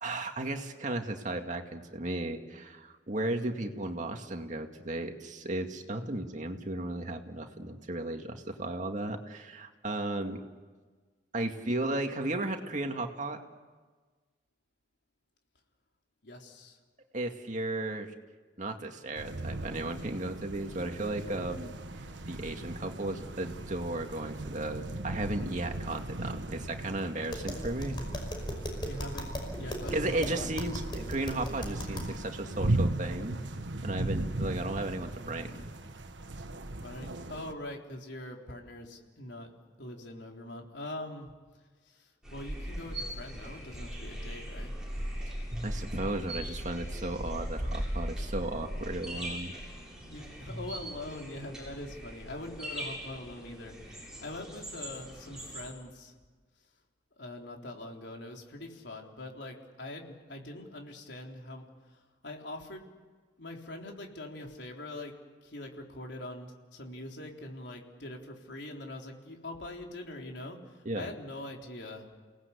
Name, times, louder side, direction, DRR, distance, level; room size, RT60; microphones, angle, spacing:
voice 1, 0.0-10.4 11.3-13.4 17.1-18.1 18.6-21.8 22.3-28.0 29.9-33.4 33.8-35.7 45.6-49.6 70.9-71.1, right 2 dB, 45° right, 4 dB, 2.2 m, -35 dB
voice 2, 16.2-16.8 28.8-30.5 36.8-39.5 39.8-41.3 41.9-44.7 50.0-56.1 57.2-61.6 61.9-62.0 62.2-62.8 63.4-65.1 65.4-72.1, left 1 dB, 75° left, 1 dB, 3.8 m, -43 dB
sound 1, 19.2-37.5, right 2 dB, 85° right, 1.4 m, -37 dB
Tap, 27.2-32.2, equal, 25° left, 5.3 m, -38 dB
sound 2, 42.2-55.7, equal, 5° right, 7.9 m, -39 dB
30.0 x 19.0 x 8.3 m, 1.4 s
head